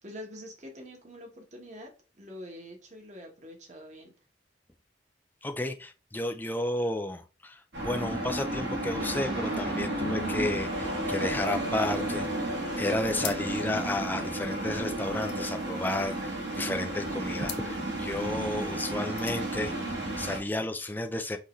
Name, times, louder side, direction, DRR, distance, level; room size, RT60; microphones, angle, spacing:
voice 1, 0.0-4.1, equal, 40° right, 1.3 m, -45 dB
voice 2, 5.4-21.4, left 1 dB, 10° left, 0.4 m, -32 dB
sound 1, 7.7-20.4, right 1 dB, 65° right, 1.6 m, -33 dB
sound 2, 9.0-20.7, left 1 dB, 90° right, 2.2 m, -46 dB
sound 3, 13.1-13.8 14.1-14.2 14.4-16.6 17.4-17.7 18.9-19.5, left 9 dB, 70° left, 0.7 m, -42 dB
5.6 x 2.7 x 3.1 m
head